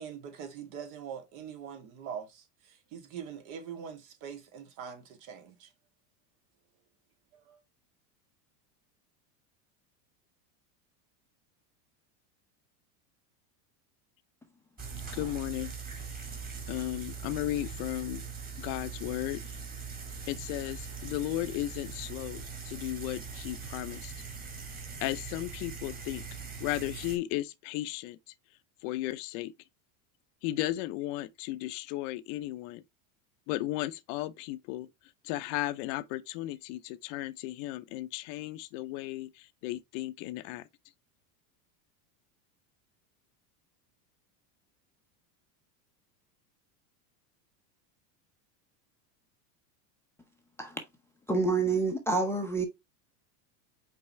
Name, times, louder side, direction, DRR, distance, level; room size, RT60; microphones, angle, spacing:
voice 1, 0.0-5.7 7.5-7.6, right 7 dB, 60° right, 2.3 m, -43 dB
sound 1, 14.8-27.2, right 5 dB, 15° right, 2.0 m, -41 dB
voice 2, 15.1-15.7 16.2-16.3 16.7-18.2 18.6-19.6 20.3-24.1 25.0-26.2 26.6-28.3 28.8-29.5 30.4-32.8 33.5-34.9 35.2-40.7, left 16 dB, 50° left, 0.6 m, -35 dB
voice 3, 51.3-52.7, right 3 dB, 5° left, 0.6 m, -27 dB
5.5 x 4.2 x 4.6 m
supercardioid pair, 145°, 49 cm